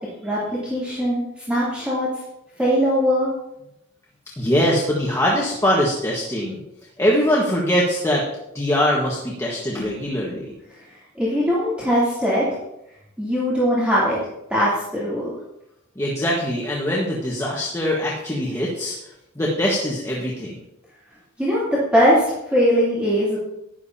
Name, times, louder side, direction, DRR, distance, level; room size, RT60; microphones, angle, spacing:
voice 1, 0.2-1.2 1.5-2.1 2.6-3.3 10.8-10.9 11.1-12.5 13.2-14.2 14.5-15.3 21.4-23.4, equal, 5° right, -10 dB, 3.0 m, -20 dB
voice 2, 4.4-6.6 7.0-8.2 8.5-10.5 15.9-19.0 19.3-20.6, equal, 15° left, -4 dB, 1.5 m, -22 dB
12.5 x 10.5 x 2.8 m, 0.84 s
head